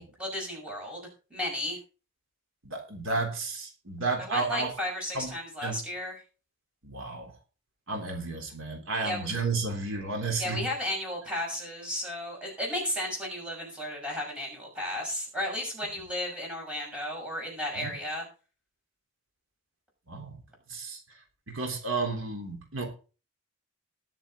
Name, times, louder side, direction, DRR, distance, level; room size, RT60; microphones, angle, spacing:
voice 1, 0.0-1.8 4.2-6.2 9.0-9.3 10.4-18.2, left 1 dB, 5° right, -2 dB, 6.4 m, -34 dB
voice 2, 2.6-4.7 5.1-5.3 5.6-5.8 6.8-7.3 7.9-10.7 17.8-17.9 20.1-20.4 20.7-21.0 21.5-22.9, right 3 dB, 85° right, 2 dB, 3.4 m, -32 dB
20.0 x 7.3 x 3.8 m, 0.35 s
head